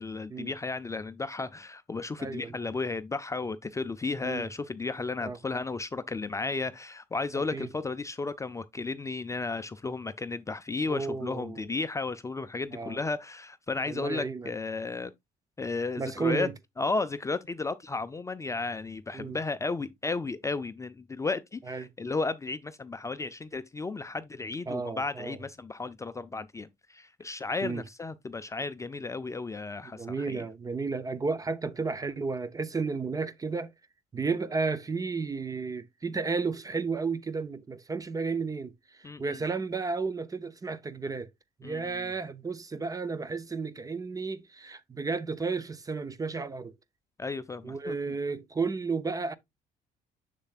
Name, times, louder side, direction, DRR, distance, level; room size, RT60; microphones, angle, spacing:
voice 1, 0.0-15.1 15.6-16.5 16.8-30.5 39.0-39.4 41.6-42.1 47.2-48.0, left 3 dB, 20° left, 0.4 m, -34 dB
voice 2, 2.2-2.7 4.2-4.5 5.2-5.4 7.3-7.7 10.9-11.7 12.7-13.0 13.8-14.5 16.0-16.5 19.1-19.4 21.7-21.9 24.7-25.4 27.6-27.8 29.8-33.7 34.1-41.3 41.6-46.7 47.6-49.3, right 4 dB, 20° right, 0.6 m, -33 dB
6.9 x 6.7 x 2.4 m
cardioid pair, 110°, 17 cm